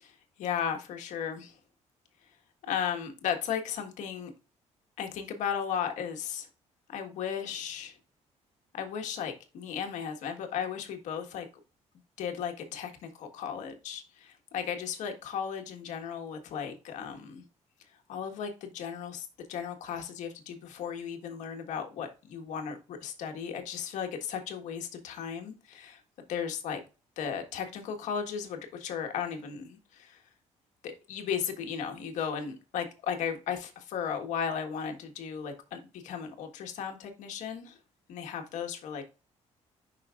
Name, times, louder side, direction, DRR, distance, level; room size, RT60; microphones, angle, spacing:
voice 1, 0.0-1.5 2.6-4.3 5.0-6.5 6.9-7.9 8.7-11.5 12.2-17.4 18.1-26.0 26.3-26.8 27.2-30.2 30.8-37.8 38.1-39.0, left 7 dB, 85° left, 4 dB, 1.5 m, -35 dB
8.6 x 5.7 x 2.5 m, 0.32 s
cardioid pair, 160°, 12 cm